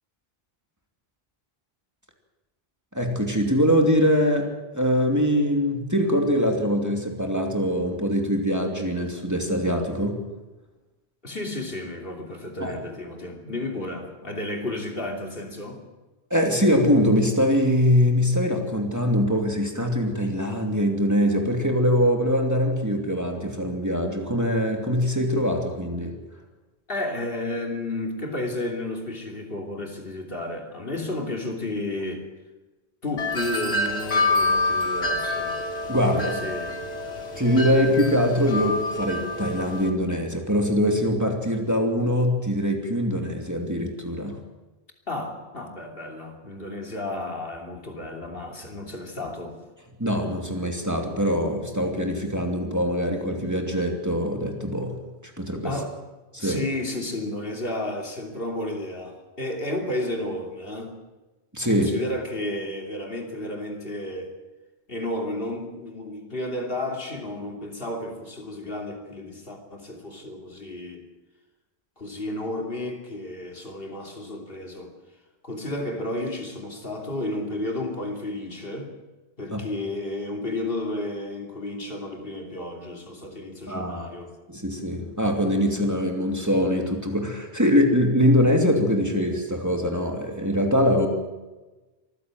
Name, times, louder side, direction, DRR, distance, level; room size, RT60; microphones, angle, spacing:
voice 1, 2.9-10.2 12.6-12.8 16.3-26.2 35.9-36.3 37.4-44.4 50.0-55.7 56.3-56.6 61.5-61.9 79.5-79.6 83.7-84.1 84.5-91.1, equal, 15° right, 2 dB, 2.8 m, -23 dB
voice 2, 11.2-15.8 26.9-32.3 33.0-35.6 36.0-36.8 45.1-49.6 55.6-55.9 56.4-60.9 61.7-64.3 64.9-71.0 72.0-74.9 75.4-78.9 79.4-84.3, left 1 dB, 60° left, 2 dB, 3.2 m, -32 dB
Wind chime, 33.2-39.9, left 2 dB, 85° left, 2.5 m, -27 dB
24.5 x 15.0 x 7.6 m, 1.1 s
omnidirectional pair, 1.1 m